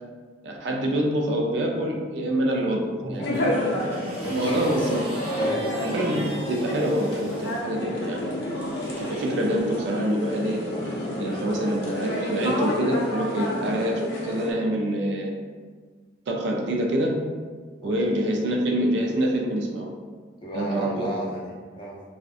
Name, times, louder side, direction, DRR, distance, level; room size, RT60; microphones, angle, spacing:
voice 1, 0.4-3.4 4.2-5.0 5.8-8.4 9.0-10.6 11.2-15.3 16.3-17.2 17.8-19.9 20.5-21.1, right 1 dB, 70° right, 1 dB, 0.4 m, -26 dB
voice 2, 3.0-3.4 4.2-5.0 5.4-5.7 11.4-11.5 17.8-17.9 20.4-22.0, equal, 25° left, -5 dB, 0.4 m, -35 dB
sound 1, 3.2-14.5, left 1 dB, 75° left, 0.5 m, -29 dB
sound 2, 3.3-7.6 8.5-9.5 10.4-10.6, right 1 dB, 35° right, 0.7 m, -41 dB
2.6 x 2.1 x 2.4 m, 1.5 s
head